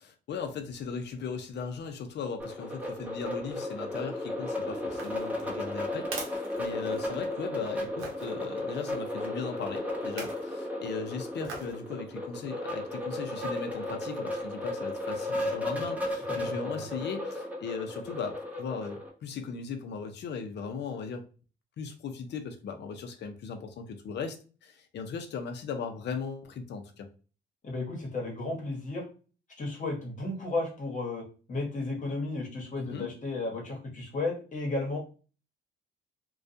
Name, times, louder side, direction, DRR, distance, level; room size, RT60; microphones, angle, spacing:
voice 1, 0.0-21.2 21.8-24.4 24.6-27.1 32.8-33.1, left 5 dB, 60° left, 6 dB, 0.6 m, -38 dB
sound 1, 2.4-19.1, left 1 dB, 5° right, 0.7 m, -34 dB
sound 2, 4.9-7.3 8.0-8.3 10.0-10.5 11.4-11.8 12.3-12.4, right 4 dB, 85° right, 0.7 m, -42 dB
voice 2, 16.1-16.9 27.6-29.0 29.6-35.0, left 2 dB, 40° left, -1 dB, 1.1 m, -34 dB
2.3 x 2.2 x 2.6 m, 0.37 s
cardioid pair, 90°, 20 cm